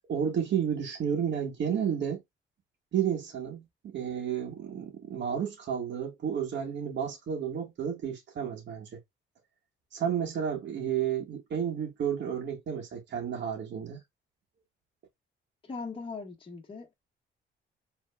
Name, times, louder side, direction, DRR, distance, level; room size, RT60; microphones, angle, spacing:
voice 1, 0.1-2.2 2.9-9.0 9.9-14.0, right 8 dB, 65° right, 1.8 m, -31 dB
voice 2, 15.6-16.9, left 4 dB, 25° left, 1.4 m, -40 dB
5.3 x 3.4 x 2.3 m
cardioid pair, 90°, 20 cm